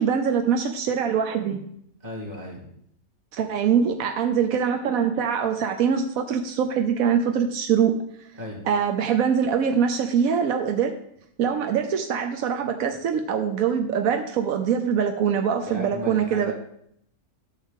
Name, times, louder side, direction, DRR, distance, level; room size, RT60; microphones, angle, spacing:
voice 1, 0.0-1.6 3.3-8.0 8.7-10.9 11.4-16.5, right 7 dB, 85° right, 5 dB, 1.2 m, -23 dB
voice 2, 2.0-2.7 8.3-8.6 15.6-16.5, left 1 dB, 30° right, -3 dB, 2.8 m, -35 dB
11.0 x 6.5 x 3.7 m, 0.71 s
omnidirectional pair, 1.4 m